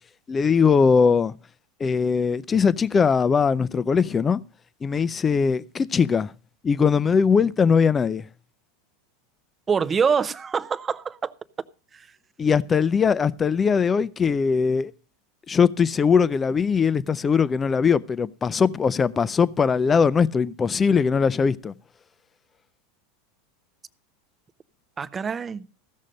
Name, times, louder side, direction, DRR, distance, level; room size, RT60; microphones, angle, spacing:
voice 1, 0.3-1.3 1.8-4.4 4.8-6.3 6.6-8.3 12.4-14.9 15.5-21.7, left 6 dB, 25° left, 0.5 m, -20 dB
voice 2, 9.7-11.3 11.9-12.0 25.0-25.7, right 6 dB, 25° right, 0.6 m, -25 dB
15.0 x 6.4 x 5.2 m
hypercardioid pair, 95°, 0 cm